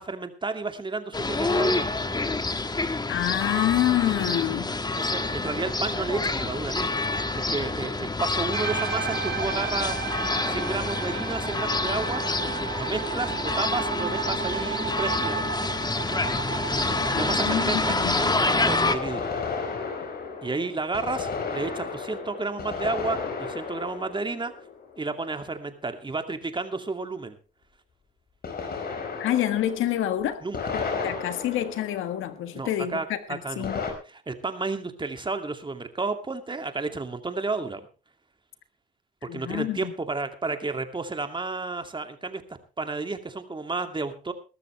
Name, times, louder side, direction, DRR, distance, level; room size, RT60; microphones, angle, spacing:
voice 1, 0.0-1.9 5.0-7.1 7.4-10.0 10.5-12.2 12.7-15.4 17.1-19.4 20.4-24.5 25.0-27.3 30.4-30.6 32.5-33.7 34.1-37.9 39.2-42.4 42.8-44.3, right 3 dB, 25° right, 2.4 m, -32 dB
sound 1, 1.1-18.9, left 3 dB, 20° left, 1.5 m, -27 dB
voice 2, 3.1-4.8 17.1-18.4 29.2-30.4 30.7-33.8 39.3-39.9, left 12 dB, 85° left, 1.5 m, -27 dB
sound 2, 8.5-18.9, right 9 dB, 65° right, 5.1 m, -34 dB
sound 3, 14.9-15.0 18.8-25.3 28.4-32.7 33.6-33.9, left 5 dB, 50° left, 4.7 m, -34 dB
21.5 x 13.0 x 3.3 m
cardioid pair, 90°, 20 cm